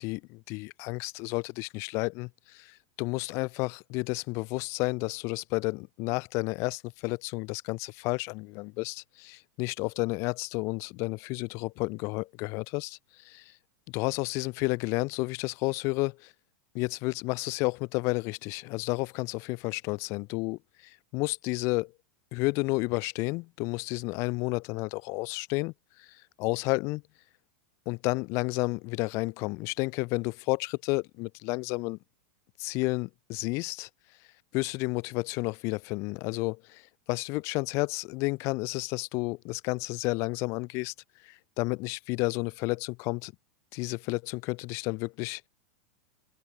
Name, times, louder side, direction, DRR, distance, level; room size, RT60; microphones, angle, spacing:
voice 1, 0.0-13.0 13.2-13.5 13.9-16.3 16.7-21.9 22.3-25.7 26.0-26.1 26.4-27.0 27.8-32.0 32.6-33.9 34.5-36.8 37.1-40.9 41.2-43.3 43.7-45.5, left 26 dB, 35° left, 1.3 m, -31 dB
supercardioid pair, 170°, 8 cm